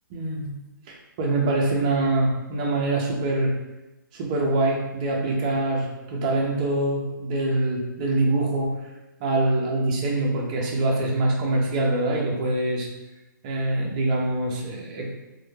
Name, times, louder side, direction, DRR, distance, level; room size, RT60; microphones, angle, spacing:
voice 1, 0.1-0.5 0.9-3.5 4.1-8.7 9.2-12.9 13.4-15.1, right 2 dB, 20° right, -1 dB, 0.3 m, -24 dB
2.1 x 2.0 x 3.0 m, 1.0 s
hypercardioid pair, 160°, 11 cm